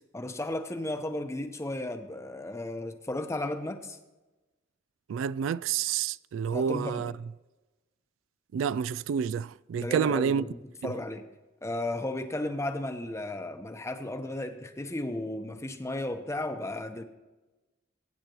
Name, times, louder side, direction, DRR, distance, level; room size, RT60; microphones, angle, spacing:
voice 1, 0.1-4.0 6.5-7.1 9.8-11.3 11.6-17.0, left 1 dB, 15° left, 0.8 m, -34 dB
voice 2, 5.1-7.1 8.5-10.4 10.8-10.9, right 7 dB, 85° right, 0.3 m, -29 dB
22.0 x 9.5 x 3.0 m
head